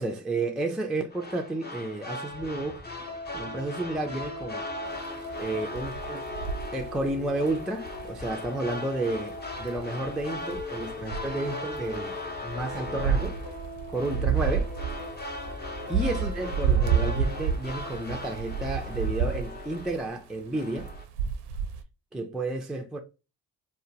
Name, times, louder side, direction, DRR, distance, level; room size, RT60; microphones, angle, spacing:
voice 1, 0.0-2.8 3.3-4.6 5.0-5.1 5.4-6.3 6.7-12.2 12.4-13.4 13.9-14.7 15.9-20.9 22.1-23.0, right 2 dB, ahead, 0.4 m, -31 dB
sound 1, 1.1-20.2 20.5-21.0, left 2 dB, 25° left, 0.7 m, -40 dB
sound 2, 2.3-17.5, left 2 dB, 70° left, 1.3 m, -41 dB
sound 3, 5.3-8.1 9.8-10.7 10.9-11.8 12.4-20.1 20.8-21.8, right 7 dB, 80° right, 0.5 m, -29 dB
2.7 x 2.1 x 2.7 m
hypercardioid pair, 50°, 39 cm